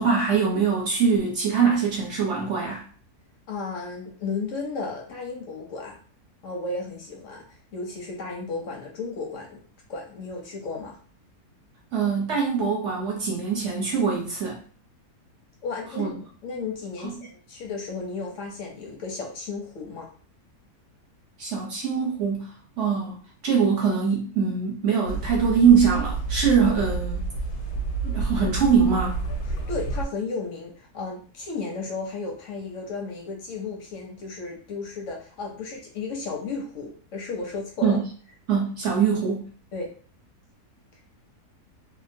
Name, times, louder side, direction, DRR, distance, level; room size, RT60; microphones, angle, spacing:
voice 1, 0.0-2.8 11.9-14.6 16.0-16.1 21.4-22.5 22.8-23.2 23.4-27.3 28.0-29.2 37.8-38.0 38.5-39.5, right 6 dB, 55° right, -3 dB, 1.0 m, -23 dB
voice 2, 3.5-6.0 6.4-7.4 7.7-9.6 9.9-11.0 15.6-16.1 16.4-20.1 29.7-38.0 39.7-39.9, left 4 dB, 65° left, 0 dB, 0.8 m, -34 dB
sound 1, 25.1-30.1, right 3 dB, 90° left, 1.2 m, -29 dB
2.8 x 2.1 x 2.6 m, 0.42 s
omnidirectional pair, 1.7 m